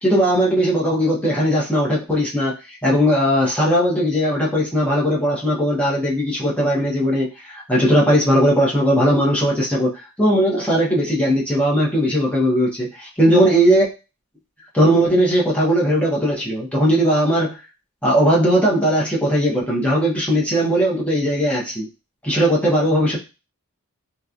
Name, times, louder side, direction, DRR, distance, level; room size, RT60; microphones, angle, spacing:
voice 1, 0.0-12.9 13.2-13.9 14.7-17.6 18.0-21.9 22.2-23.2, equal, 5° left, -5 dB, 0.9 m, -18 dB
2.9 x 2.3 x 2.5 m, 0.29 s
head